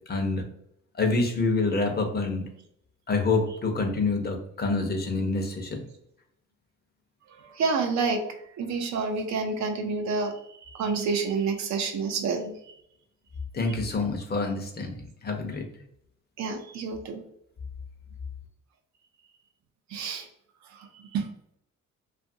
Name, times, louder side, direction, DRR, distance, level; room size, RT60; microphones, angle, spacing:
voice 1, 0.1-0.4 1.0-2.5 3.1-5.8 13.5-15.6, left 3 dB, 30° left, 3 dB, 0.7 m, -27 dB
voice 2, 7.5-8.2 8.6-10.3 10.7-12.6 16.4-17.2 19.9-20.3 21.1-21.3, right 4 dB, 65° right, 4 dB, 0.6 m, -28 dB
2.7 x 2.4 x 2.6 m, 0.72 s
cardioid pair, 90°, 30 cm